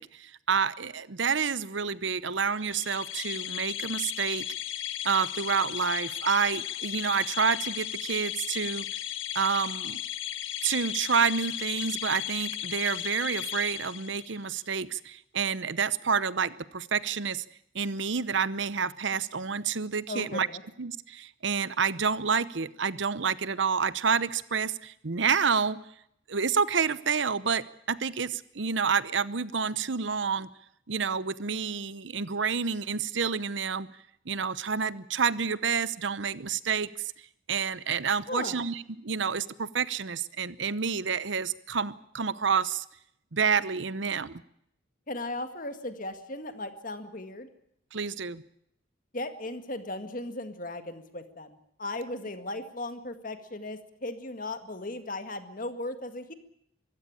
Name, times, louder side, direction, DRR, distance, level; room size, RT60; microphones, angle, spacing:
voice 1, 0.0-4.4 5.0-8.9 9.3-10.0 10.6-17.4 17.7-20.5 20.8-25.8 26.3-30.5 30.9-33.9 34.3-37.1 37.5-42.8 43.3-44.4 47.9-48.4, right 6 dB, 70° right, 17 dB, 0.9 m, -29 dB
sound 1, 2.6-14.5, left 12 dB, 80° left, 1.6 m, -35 dB
voice 2, 20.1-20.6 38.3-38.6 45.1-47.5 49.1-56.3, left 2 dB, 45° left, 9 dB, 1.9 m, -37 dB
24.0 x 15.5 x 8.7 m, 0.74 s
head